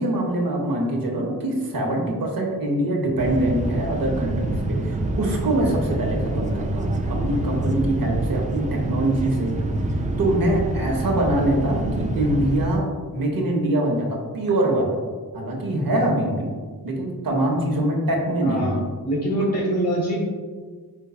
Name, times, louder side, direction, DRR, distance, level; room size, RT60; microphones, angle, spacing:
voice 1, 0.0-9.6 10.2-15.0 15.3-16.5 16.8-18.8, right 1 dB, 70° right, -1 dB, 0.9 m, -24 dB
sound 1, 3.2-12.7, right 1 dB, 20° right, 0.3 m, -26 dB
voice 2, 18.4-20.2, equal, 45° left, -2 dB, 1.0 m, -25 dB
4.5 x 3.8 x 2.3 m, 1.5 s
wide cardioid pair, 85°, 36 cm